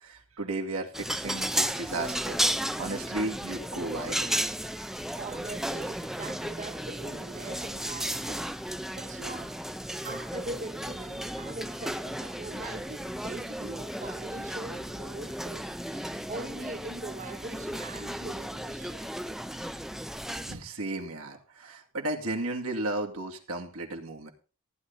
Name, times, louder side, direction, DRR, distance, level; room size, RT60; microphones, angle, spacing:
voice 1, 0.0-2.4 2.8-4.3 20.5-24.3, right 2 dB, 75° right, 2.4 m, -34 dB
sound 1, 0.9-20.5, right 1 dB, ahead, 0.5 m, -34 dB
voice 2, 5.2-9.6 9.9-19.2, right 3 dB, 35° right, 0.8 m, -42 dB
15.0 x 10.5 x 4.1 m
head